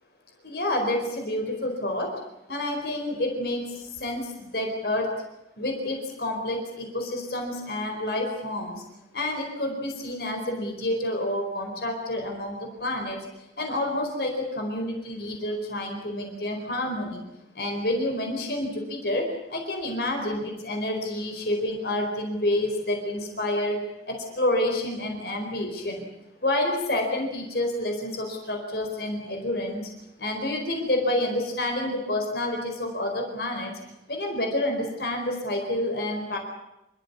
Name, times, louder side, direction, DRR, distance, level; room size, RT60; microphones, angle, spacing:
voice 1, 0.4-2.2 2.5-5.1 5.6-8.8 9.1-13.2 13.6-17.2 17.5-23.8 24.1-26.1 26.4-29.9 30.2-33.7 34.1-36.4, left 1 dB, 60° left, 3 dB, 4.5 m, -28 dB
28.0 x 14.0 x 9.8 m, 0.93 s
head